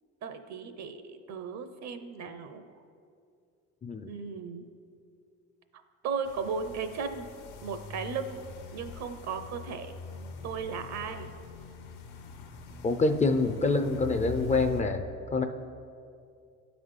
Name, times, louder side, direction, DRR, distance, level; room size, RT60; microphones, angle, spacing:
voice 1, 0.2-2.8 4.1-4.6 5.7-7.3 7.6-8.4 8.7-9.9 10.4-11.3, right 5 dB, 55° right, 9 dB, 0.7 m, -36 dB
sound 1, 6.2-14.8, left 4 dB, 75° left, 0.8 m, -43 dB
voice 2, 12.8-15.0 15.3-15.4, left 3 dB, 20° left, 6 dB, 0.4 m, -26 dB
12.0 x 4.1 x 3.1 m, 2.4 s
supercardioid pair, 70°, 33 cm